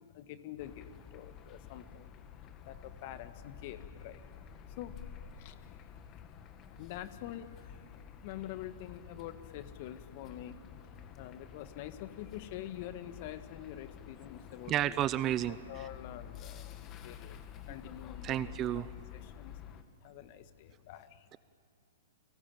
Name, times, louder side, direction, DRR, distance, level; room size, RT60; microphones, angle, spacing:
voice 1, 0.0-2.1 2.4-4.2 4.7-5.0 5.4-5.8 6.7-10.6 10.8-14.9 15.2-19.6 20.0-21.3, left 12 dB, 50° left, 11 dB, 1.6 m, -47 dB
sound 1, 0.6-19.8, left 8 dB, 30° left, 1.7 m, -50 dB
voice 2, 14.7-15.6 18.2-18.9, right 12 dB, 30° right, 16 dB, 0.7 m, -31 dB
30.0 x 19.0 x 8.9 m, 2.6 s
hypercardioid pair, 120°, 0 cm